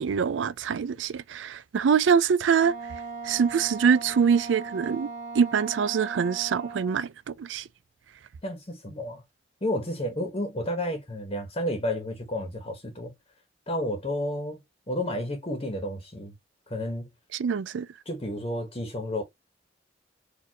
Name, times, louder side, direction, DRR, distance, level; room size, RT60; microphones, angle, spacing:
voice 1, 0.0-2.7 3.2-5.1 5.3-7.1 7.4-7.6 17.4-17.9, right 6 dB, 85° right, 0.4 m, -24 dB
Wind instrument woodwind instrument, 2.5-7.1, right 4 dB, 45° right, 1.2 m, -39 dB
voice 2, 8.4-9.2 9.6-13.1 13.7-16.3 16.7-17.1 18.0-19.2, left 1 dB, 30° left, 1.2 m, -31 dB
4.4 x 2.7 x 2.9 m
head